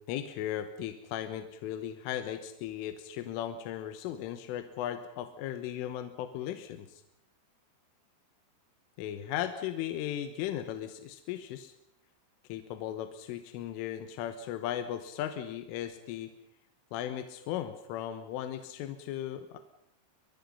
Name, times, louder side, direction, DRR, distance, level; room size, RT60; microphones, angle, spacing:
voice 1, 0.0-7.0 9.0-11.7 12.5-16.3 16.9-19.6, left 11 dB, 80° left, 9 dB, 3.7 m, -37 dB
23.5 x 22.5 x 5.6 m, 0.81 s
omnidirectional pair, 5.7 m